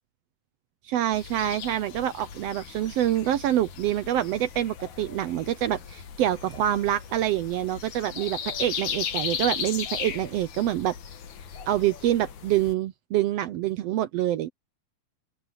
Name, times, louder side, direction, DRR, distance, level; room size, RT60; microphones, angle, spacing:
voice 1, 0.8-10.9 11.7-14.5, right 12 dB, 80° right, 1.5 m, -26 dB
sound 1, 1.1-12.7, left 8 dB, 70° left, 3.1 m, -37 dB
open air
omnidirectional pair, 3.5 m